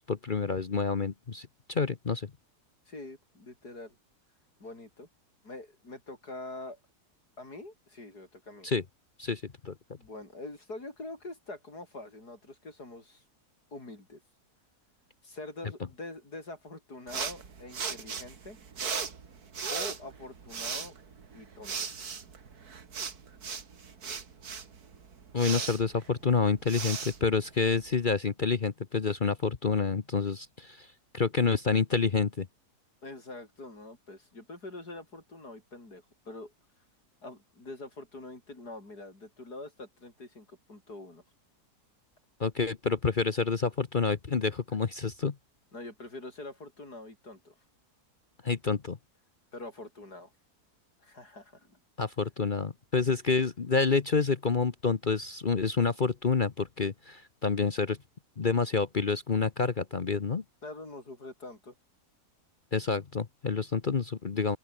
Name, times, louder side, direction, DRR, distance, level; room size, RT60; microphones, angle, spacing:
voice 1, 0.0-2.3 8.6-8.8 9.2-9.7 25.3-30.9 31.1-32.5 42.4-45.3 48.4-49.0 52.0-58.0 58.4-60.4 62.7-64.6, left 4 dB, 35° left, 1.0 m, -28 dB
voice 2, 2.9-4.0 4.6-5.1 5.4-6.8 7.4-8.7 10.0-13.2 13.7-14.2 15.2-18.6 19.7-20.9 21.3-21.9 33.0-36.5 37.2-41.2 45.7-47.6 49.5-50.3 51.0-51.8 53.1-53.2 60.6-61.7, left 2 dB, 80° left, 7.0 m, -44 dB
sound 1, 17.1-28.0, right 6 dB, 70° right, 2.5 m, -38 dB
open air
omnidirectional pair, 1.7 m